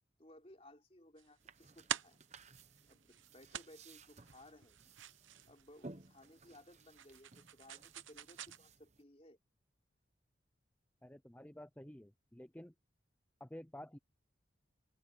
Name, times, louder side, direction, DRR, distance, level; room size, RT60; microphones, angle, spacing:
voice 1, 0.2-2.2 2.9-4.8 5.5-9.4, left 1 dB, 30° left, 3.7 m, -60 dB
sound 1, 1.2-8.6, right 9 dB, 90° right, 0.9 m, -47 dB
sound 2, 1.4-9.0, right 3 dB, 35° right, 0.9 m, -58 dB
voice 2, 11.0-12.7 13.4-14.0, left 1 dB, 10° left, 0.6 m, -51 dB
open air
head